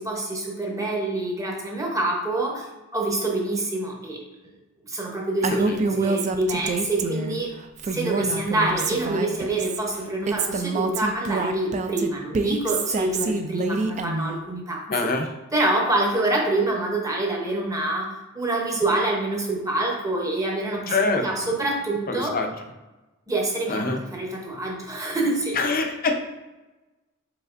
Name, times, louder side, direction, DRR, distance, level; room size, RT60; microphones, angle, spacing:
voice 1, 0.0-4.2 4.8-7.5 7.9-15.1 15.5-22.4 23.3-25.6, right 2 dB, 15° right, -1 dB, 0.8 m, -26 dB
Female speech woman speaking, 5.4-7.4 7.8-9.8 10.3-14.4, right 4 dB, 35° right, 0.3 m, -27 dB
voice 2, 5.5-6.0 14.9-15.3 20.9-21.5 22.1-22.5 23.7-24.0 25.5-26.2, left 3 dB, 40° left, 5 dB, 0.5 m, -25 dB
5.0 x 4.0 x 2.5 m, 1.1 s
head